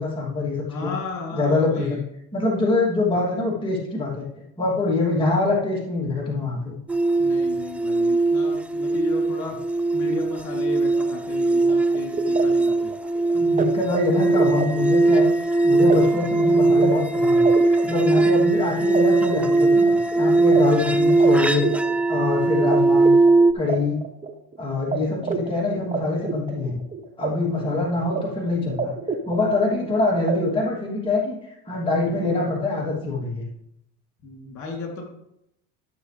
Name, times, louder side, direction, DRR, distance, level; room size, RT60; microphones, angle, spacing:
voice 1, 0.0-0.9 1.3-2.0 2.3-4.3 4.6-6.8 13.3-15.3 15.6-17.5 17.8-21.7 22.1-23.1 23.5-24.0 24.6-26.8 27.2-28.9 29.3-31.3 31.7-33.5, left 2 dB, 15° left, -5 dB, 2.9 m, -24 dB
voice 2, 0.7-2.0 7.2-9.5 9.9-12.9 25.2-25.3 34.2-35.0, left 3 dB, 55° left, 0 dB, 3.4 m, -34 dB
sound 1, 6.9-23.5, right 3 dB, 5° right, 0.4 m, -20 dB
sound 2, 11.6-22.8 23.0-24.6 24.9-25.0 25.2-27.3 27.5-28.2 28.5-29.9 30.3-30.4, right 4 dB, 20° right, 1.2 m, -30 dB
13.0 x 6.8 x 3.4 m, 0.79 s
supercardioid pair, 100°, 36 cm